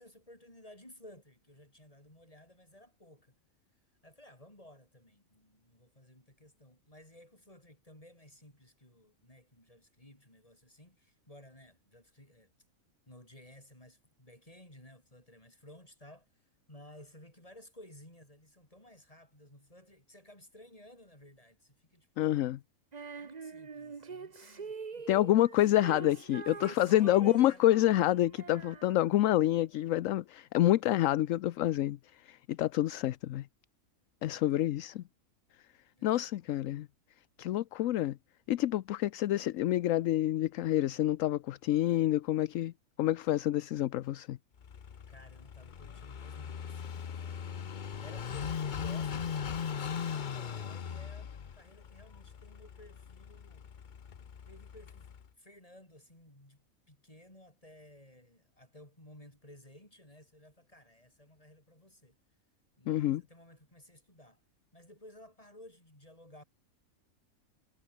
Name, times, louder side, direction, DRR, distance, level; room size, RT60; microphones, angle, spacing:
voice 1, 0.0-3.3 4.0-12.5 13.1-22.6 23.1-25.1 26.5-27.7 34.3-34.8 35.9-36.4 45.1-47.6 48.0-53.7 54.5-55.1 55.4-62.2 62.8-64.4 64.7-66.4, left 1 dB, 25° left, 7.0 m, -56 dB
voice 2, 22.2-22.6 25.1-32.0 32.2-33.5 34.2-35.0 36.0-36.9 37.4-38.2 38.5-42.7 43.0-44.4 62.9-63.2, left 14 dB, 70° left, 1.0 m, -28 dB
Female singing, 22.9-29.4, right 5 dB, 35° right, 1.0 m, -45 dB
Car passing by / Idling, 44.6-55.3, left 7 dB, 45° left, 0.7 m, -39 dB
omnidirectional pair, 1.5 m